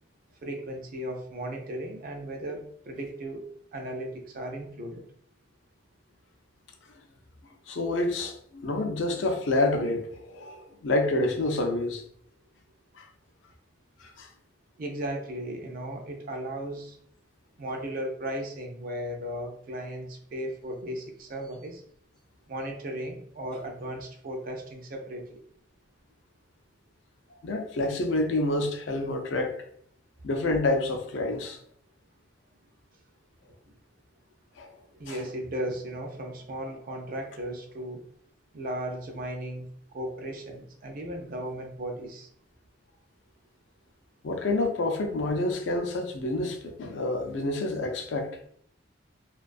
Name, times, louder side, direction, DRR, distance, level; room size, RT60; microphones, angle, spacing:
voice 1, 0.4-3.5 3.7-5.0 14.8-17.0 17.6-21.8 22.5-25.3 34.9-38.0 38.5-39.7 39.9-42.3, right 1 dB, 45° right, 0.4 m, -36 dB
voice 2, 7.7-12.0 13.0-13.1 14.0-14.3 27.4-29.6 30.2-31.6 34.6-34.7 35.1-35.2 44.2-48.3, left 2 dB, 75° left, 0.4 m, -28 dB
2.3 x 2.3 x 2.4 m
head